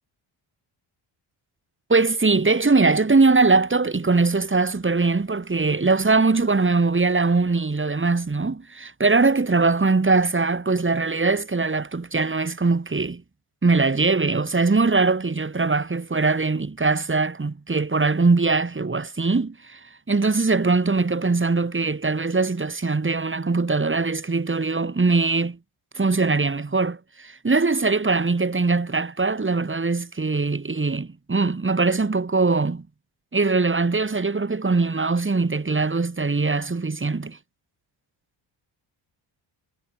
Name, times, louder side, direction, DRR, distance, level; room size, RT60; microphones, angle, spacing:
voice 1, 1.9-13.2 13.6-19.8 20.1-25.6 25.9-32.8 33.3-37.4, right 3 dB, 25° right, 6.3 m, -21 dB
cardioid pair, 95°, 49 cm